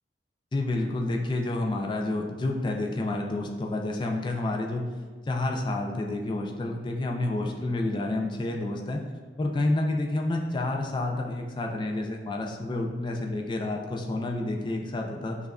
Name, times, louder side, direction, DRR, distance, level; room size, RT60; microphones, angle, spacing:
voice 1, 0.5-4.8 5.3-9.0 9.4-15.4, left 2 dB, 25° left, 2 dB, 0.3 m, -29 dB
5.5 x 2.4 x 2.3 m, 1.5 s
head